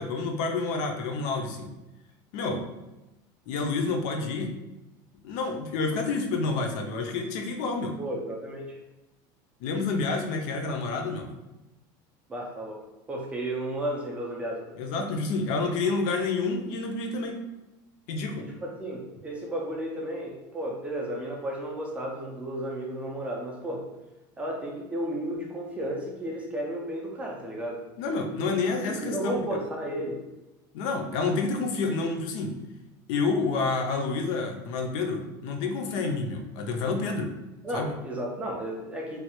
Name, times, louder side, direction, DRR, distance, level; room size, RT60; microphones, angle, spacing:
voice 1, 0.0-1.7 2.3-2.7 3.5-4.5 5.2-8.0 9.6-11.3 14.8-17.4 18.1-18.5 28.0-29.4 30.7-32.5 33.1-37.3 37.7-37.9, left 3 dB, 55° left, 3 dB, 0.5 m, -29 dB
voice 2, 8.0-8.8 12.3-14.7 18.4-23.9 24.4-27.8 28.8-30.2 37.6-39.2, right 1 dB, 10° right, -1 dB, 0.3 m, -33 dB
3.1 x 2.2 x 2.9 m, 1.0 s
cardioid pair, 175°, 11 cm